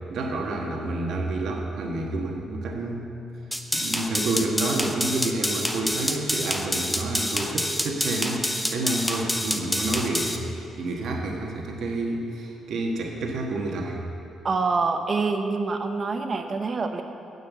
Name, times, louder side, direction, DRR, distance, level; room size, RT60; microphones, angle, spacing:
voice 1, 0.1-3.1 3.7-14.0, right 2 dB, 70° right, 0 dB, 1.5 m, -29 dB
sound 1, 3.5-10.4, left 1 dB, 5° left, 0.9 m, -27 dB
voice 2, 14.4-17.0, right 4 dB, 40° right, 5 dB, 1.0 m, -26 dB
9.5 x 6.9 x 8.3 m, 2.7 s
cardioid pair, 90°, 0 cm